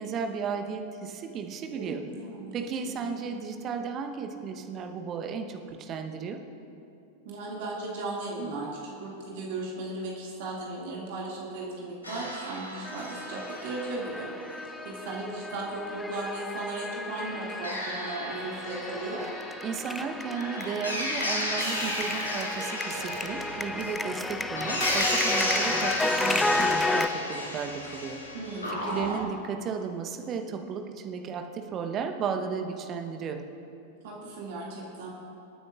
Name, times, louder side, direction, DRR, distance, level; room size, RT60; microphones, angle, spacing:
voice 1, 0.0-2.0 2.5-6.4 19.6-28.2 28.7-33.4, right 6 dB, 30° right, 5 dB, 1.0 m, -34 dB
voice 2, 1.7-2.7 2.9-3.0 7.2-14.3 14.8-19.2 28.3-29.3 34.0-35.1, right 2 dB, 50° right, -3 dB, 2.2 m, -36 dB
sound 1, 12.0-14.0 17.2-29.2, left 1 dB, 80° left, 2.1 m, -33 dB
sound 2, 12.9-27.1, left 2 dB, 10° left, 0.5 m, -33 dB
26.0 x 9.4 x 2.5 m, 2.7 s
figure-of-eight pair, 90°, 0 cm